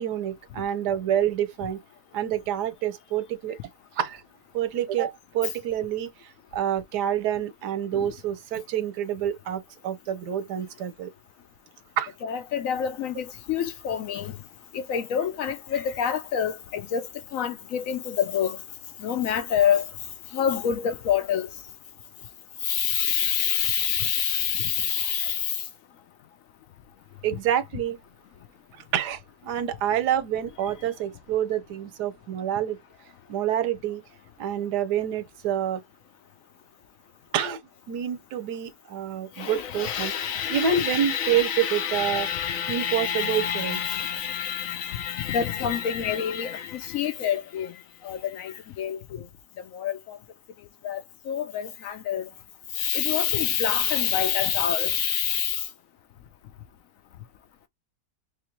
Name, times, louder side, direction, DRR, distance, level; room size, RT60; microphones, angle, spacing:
voice 1, 0.0-1.8 2.1-3.6 4.0-4.2 4.5-6.1 6.5-11.1 12.0-12.1 27.2-28.0 28.9-32.8 33.3-34.0 34.4-35.8 37.3-37.6 37.9-40.1 40.5-42.3 42.7-43.8, right 9 dB, 90° right, 1.3 m, -27 dB
voice 2, 12.2-14.3 14.7-17.1 17.3-18.6 19.0-19.9 20.3-21.5 22.6-25.5 39.4-47.7 48.0-49.0 49.7-50.2 50.8-51.0 51.3-52.3 52.8-55.6, left 8 dB, 70° left, 0.9 m, -27 dB
3.7 x 3.2 x 2.9 m
omnidirectional pair, 1.7 m